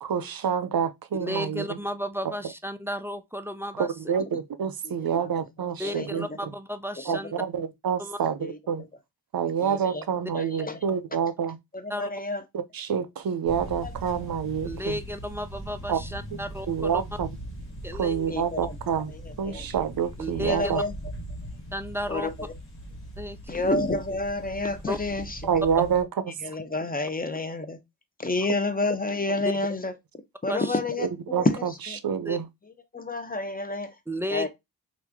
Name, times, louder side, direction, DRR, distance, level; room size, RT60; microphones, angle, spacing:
voice 1, 0.0-1.7 2.2-2.3 3.8-6.5 7.1-8.8 9.3-11.6 12.5-15.0 15.9-16.0 16.7-17.3 17.9-19.1 19.4-20.8 25.5-26.3 31.0-31.5 32.0-32.5, right 7 dB, 55° right, 0.6 m, -27 dB
voice 2, 1.2-3.9 5.8-7.3 8.0-8.2 11.9-12.1 14.6-17.0 17.8-18.3 20.2-20.8 21.7-22.3 23.2-23.6 24.9-25.0 30.5-30.8 32.3-32.4 34.1-34.5, equal, 5° right, 0.3 m, -33 dB
voice 3, 4.8-5.3 5.8-6.4 7.1-7.3 8.4-8.9 9.6-10.0 10.3-10.8 11.7-12.4 13.8-13.9 18.3-18.8 19.1-19.7 20.3-20.9 22.1-22.5 23.5-25.5 26.4-27.8 28.2-29.9 30.4-31.1 31.4-32.0 32.9-34.0 34.3-34.5, left 2 dB, 20° left, 0.7 m, -29 dB
sound 1, 13.4-26.0, right 1 dB, 90° left, 1.3 m, -40 dB
3.0 x 2.5 x 3.5 m
wide cardioid pair, 65°, 42 cm